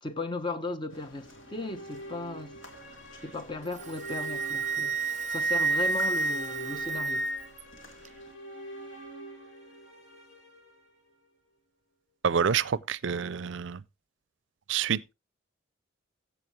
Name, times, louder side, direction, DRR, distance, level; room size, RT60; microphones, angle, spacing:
voice 1, 0.0-2.6 3.2-7.3 12.5-12.6, left 2 dB, 25° left, 0.9 m, -36 dB
sound 1, 0.9-8.4, left 1 dB, 80° left, 2.7 m, -53 dB
sound 2, 1.2-11.4, right 1 dB, 65° left, 3.8 m, -46 dB
Wind instrument woodwind instrument, 3.7-7.6, right 3 dB, 35° right, 0.7 m, -29 dB
voice 2, 12.2-13.8 14.7-15.1, right 7 dB, 70° right, 0.5 m, -28 dB
14.5 x 8.2 x 3.2 m
head